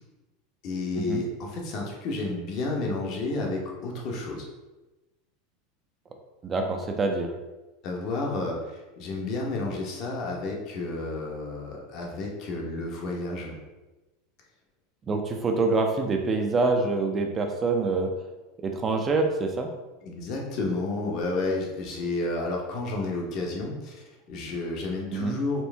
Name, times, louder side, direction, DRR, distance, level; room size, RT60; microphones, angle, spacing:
voice 1, 0.6-4.4 7.8-13.6 20.0-25.6, left 2 dB, 45° left, 0 dB, 0.9 m, -31 dB
voice 2, 6.4-7.3 15.1-18.1 18.6-19.7 25.1-25.4, right 3 dB, 20° right, 4 dB, 0.5 m, -25 dB
4.4 x 2.6 x 3.3 m, 1.1 s
supercardioid pair, 145°, 0 cm